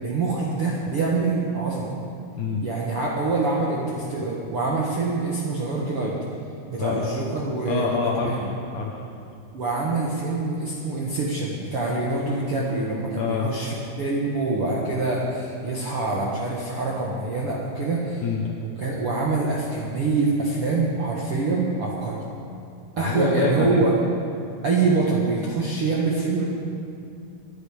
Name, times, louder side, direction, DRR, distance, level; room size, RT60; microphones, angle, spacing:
voice 1, 0.0-2.0 2.6-6.2 6.7-8.5 9.5-18.2 18.8-22.2 23.0-23.9 24.6-26.4, right 3 dB, 60° right, -4 dB, 1.4 m, -25 dB
voice 2, 2.3-2.6 6.8-7.1 7.7-9.0 13.2-13.5 18.2-18.5 23.0-23.8, left 5 dB, 70° left, 0 dB, 2.0 m, -26 dB
24.0 x 10.0 x 5.0 m, 2.5 s
omnidirectional pair, 4.8 m